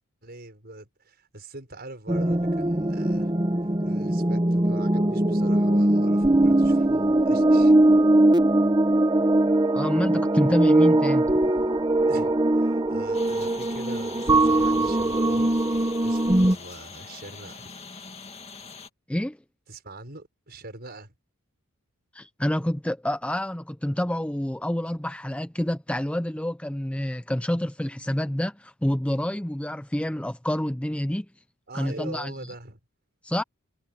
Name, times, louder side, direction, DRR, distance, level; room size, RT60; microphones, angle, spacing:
voice 1, 0.2-3.4 3.8-7.7 12.1-15.5 16.0-17.7 19.7-21.1 31.7-32.8, right 2 dB, 45° right, 6.3 m, -42 dB
sound 1, 2.1-16.6, right 1 dB, 20° right, 0.9 m, -21 dB
voice 2, 9.7-11.2 19.1-19.4 22.1-31.3 31.7-32.5 33.2-33.4, left 1 dB, 5° left, 0.5 m, -28 dB
sound 2, 13.1-18.9, left 5 dB, 30° left, 2.2 m, -43 dB
head